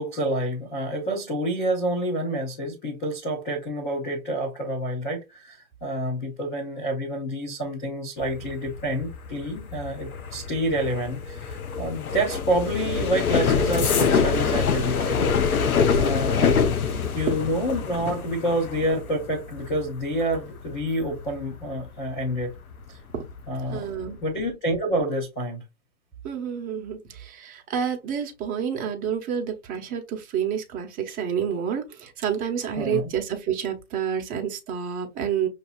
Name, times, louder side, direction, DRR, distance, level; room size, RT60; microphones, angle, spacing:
voice 1, 0.0-15.2 15.5-15.7 15.9-16.6 17.1-22.5 22.9-23.0 23.5-23.9 24.2-25.6 32.8-33.1, right 1 dB, 10° left, 0.4 m, -28 dB
sound 1, 8.2-22.8 23.2-23.6 23.9-24.3, left 6 dB, 80° left, 0.9 m, -26 dB
voice 2, 17.0-17.3 23.1-23.3 23.7-24.2 26.2-35.5, right 8 dB, 20° right, 0.9 m, -29 dB
6.3 x 2.8 x 2.3 m
hypercardioid pair, 130°, 42 cm